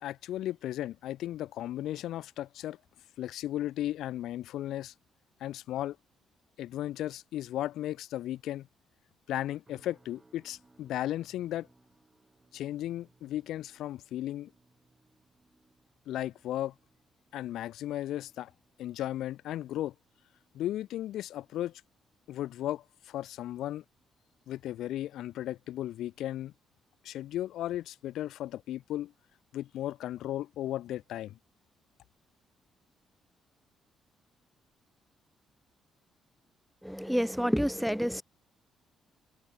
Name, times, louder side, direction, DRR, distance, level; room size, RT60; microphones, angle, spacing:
voice 1, 0.0-2.8 3.2-4.9 5.4-6.0 6.6-8.7 9.3-11.7 12.5-14.5 16.1-16.7 17.3-18.5 18.8-19.9 20.5-21.8 22.3-23.8 24.5-26.5 27.0-29.1 29.5-31.4, left 13 dB, 80° left, 0.6 m, -35 dB
sound 1, 9.7-24.9 25.2-25.6 26.1-26.3, right 2 dB, 20° right, 6.2 m, -68 dB
voice 2, 36.8-38.2, equal, ahead, 0.6 m, -28 dB
cardioid pair, 90°, 0 cm